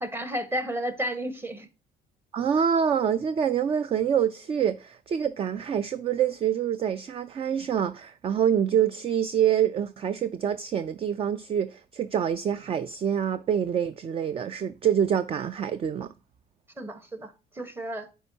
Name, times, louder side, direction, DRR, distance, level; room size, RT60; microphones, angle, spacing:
voice 1, 0.0-1.7 16.8-18.1, equal, 15° right, 1.1 m, -32 dB
voice 2, 2.3-16.1, right 8 dB, 35° right, 0.4 m, -26 dB
9.8 x 4.6 x 2.7 m
cardioid pair, 110°, 17 cm